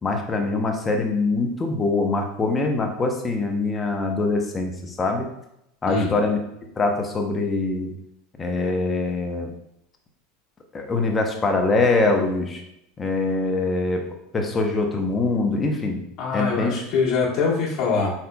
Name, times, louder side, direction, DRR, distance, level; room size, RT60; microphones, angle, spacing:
voice 1, 0.0-5.3 5.8-6.4 6.8-7.9 8.4-9.5 10.7-12.6 13.0-16.0 16.3-16.7, left 3 dB, 20° left, 3 dB, 0.7 m, -23 dB
voice 2, 16.2-18.1, left 4 dB, 40° left, -4 dB, 1.5 m, -23 dB
5.0 x 4.2 x 2.2 m, 0.81 s
supercardioid pair, 140°, 0 cm